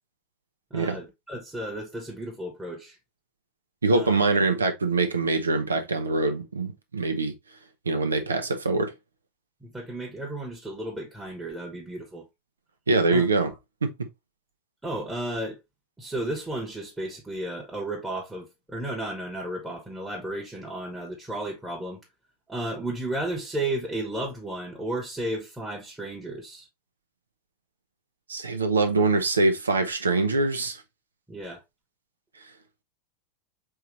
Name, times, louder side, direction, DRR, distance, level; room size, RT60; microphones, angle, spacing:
voice 1, 0.7-3.0 3.9-4.2 9.6-12.3 13.1-13.2 14.8-15.6 16.0-22.0 22.5-26.7 31.3-31.6, right 1 dB, 10° right, 1.3 m, -33 dB
voice 2, 3.8-7.3 7.9-8.9 12.9-13.5 13.8-13.9 28.3-30.8, right 3 dB, 80° right, 0.9 m, -24 dB
4.7 x 3.2 x 3.0 m
figure-of-eight pair, 90°, 0 cm